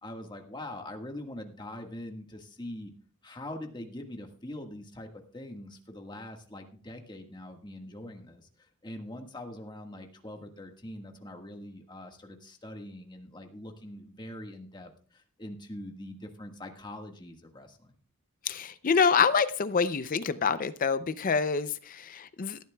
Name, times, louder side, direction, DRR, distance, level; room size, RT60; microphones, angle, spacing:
voice 1, 0.0-2.9 3.2-18.0, left 1 dB, 20° left, 4 dB, 1.5 m, -43 dB
voice 2, 18.5-22.6, left 5 dB, 40° left, 14 dB, 0.5 m, -26 dB
18.5 x 13.0 x 2.3 m, 0.41 s
head